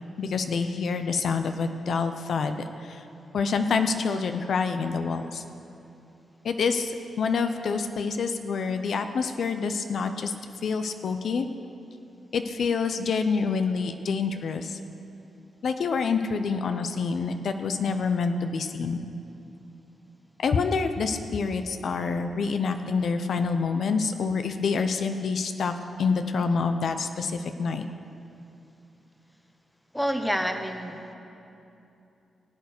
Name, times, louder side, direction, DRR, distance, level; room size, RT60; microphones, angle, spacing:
voice 1, 0.2-2.5 2.8-3.0 3.3-5.4 6.4-10.3 10.6-11.5 12.3-14.8 15.6-19.0 20.4-25.7 26.0-27.9, left 5 dB, 70° left, 8 dB, 0.6 m, -27 dB
voice 2, 29.9-31.1, equal, 5° left, 6 dB, 1.1 m, -28 dB
16.5 x 8.2 x 6.6 m, 2.8 s
cardioid pair, 85°, 0 cm